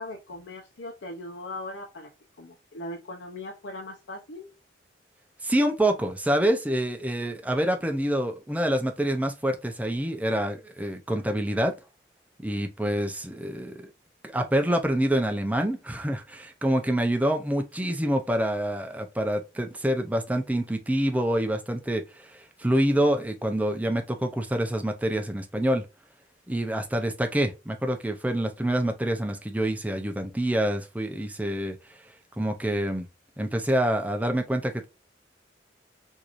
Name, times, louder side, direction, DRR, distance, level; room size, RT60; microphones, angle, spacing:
voice 1, 0.0-2.1 2.4-4.5, left 1 dB, 85° left, 0.7 m, -39 dB
voice 2, 5.4-11.7 12.4-13.9 14.3-25.9 26.5-31.8 32.4-33.1 33.4-34.9, right 1 dB, 10° right, 0.5 m, -26 dB
4.5 x 2.7 x 2.5 m
head